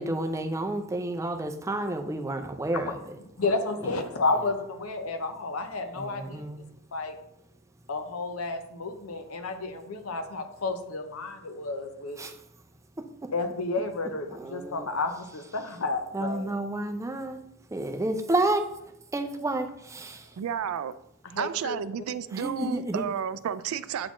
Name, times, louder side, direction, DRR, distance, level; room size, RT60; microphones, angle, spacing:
voice 1, 0.0-3.0 6.0-6.6 12.2-12.3 13.0-13.3 14.3-14.9 16.1-17.4 17.7-18.7 19.1-20.3 22.3-23.1, right 2 dB, 15° right, 0.4 m, -30 dB
voice 2, 3.4-6.4 6.9-7.2 7.9-12.2 13.3-16.5 21.2-21.8, left 3 dB, 80° left, 0.7 m, -31 dB
voice 3, 20.4-20.9 21.4-24.1, right 8 dB, 85° right, 0.3 m, -31 dB
8.5 x 4.1 x 3.0 m
head